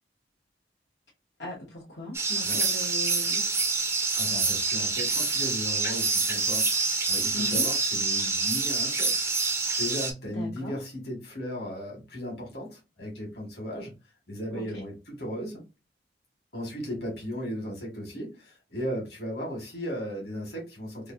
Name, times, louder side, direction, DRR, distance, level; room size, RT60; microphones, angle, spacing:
voice 1, 1.4-3.6 7.3-7.6 10.2-10.8 14.5-14.8, left 1 dB, 80° left, 1.0 m, -38 dB
sound 1, 2.1-10.1, right 4 dB, 15° right, 0.5 m, -26 dB
voice 2, 4.1-9.3 9.8-13.9 14.3-15.6 16.5-21.1, equal, 60° left, 1.4 m, -36 dB
3.0 x 2.5 x 2.5 m
head